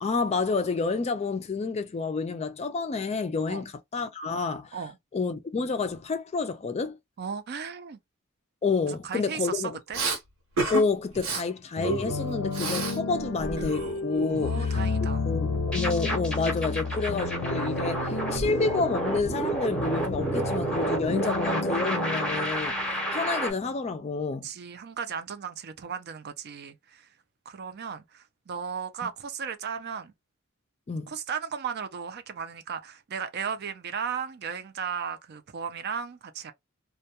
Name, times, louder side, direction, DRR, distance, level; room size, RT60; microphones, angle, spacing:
voice 1, 0.0-4.8 5.1-7.0 8.6-9.8 10.7-14.7 15.3-24.5 30.9-31.1, left 4 dB, 30° left, 0.4 m, -29 dB
voice 2, 7.2-8.0 8.9-10.0 14.3-15.2 24.4-27.1 27.5-30.1 31.1-36.5, right 6 dB, 50° right, 0.4 m, -35 dB
Respiratory sounds, 9.9-10.2 10.6-10.8 11.1-11.4 11.8-13.0 13.3-14.7, right 2 dB, 75° right, 0.9 m, -31 dB
sound 1, 11.8-23.5, left 3 dB, 90° left, 0.6 m, -32 dB
sound 2, 15.5-23.5, right 1 dB, 5° left, 0.7 m, -30 dB
2.2 x 2.2 x 2.8 m
head